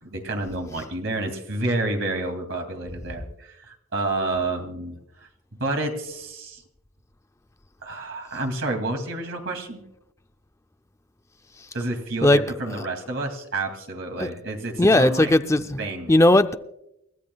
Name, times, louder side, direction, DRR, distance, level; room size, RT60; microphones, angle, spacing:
voice 1, 0.0-5.0 5.6-6.6 7.8-9.8 11.7-15.4 15.8-16.1, right 2 dB, 60° right, 2.5 m, -29 dB
voice 2, 14.8-15.8 16.1-16.5, left 1 dB, 15° left, 0.5 m, -17 dB
29.0 x 13.5 x 2.3 m
head